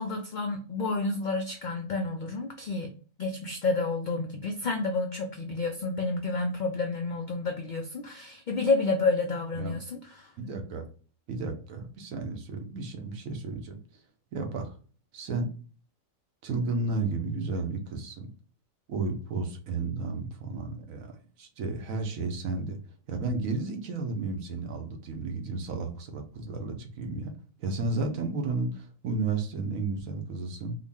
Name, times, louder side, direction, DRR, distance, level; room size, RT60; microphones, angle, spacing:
voice 1, 0.0-2.9 3.2-10.3, left 3 dB, 85° left, 3 dB, 0.4 m, -30 dB
voice 2, 10.4-10.9 11.3-14.0 14.3-14.8 15.1-15.5 16.4-18.3 18.9-22.8 23.1-27.3 27.6-30.8, right 3 dB, 90° right, 4 dB, 1.2 m, -33 dB
3.8 x 2.1 x 3.4 m, 0.40 s
omnidirectional pair, 1.4 m